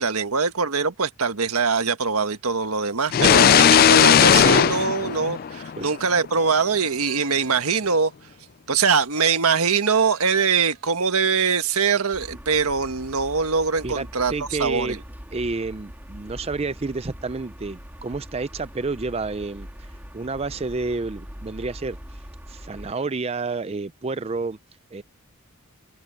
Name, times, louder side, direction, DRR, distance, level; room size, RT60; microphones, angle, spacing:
voice 1, 0.0-8.1 8.7-15.0, right 5 dB, 90° right, 1.5 m, -22 dB
sound 1, 3.1-5.9, left 8 dB, 45° left, 0.3 m, -16 dB
sound 2, 6.4-8.1 9.2-10.9, right 6 dB, 60° right, 4.4 m, -45 dB
sound 3, 12.1-22.9, equal, 10° right, 3.6 m, -42 dB
voice 2, 13.8-15.0 15.3-19.9 20.1-22.2 22.5-24.6 24.9-25.0, right 3 dB, 30° right, 0.5 m, -30 dB
head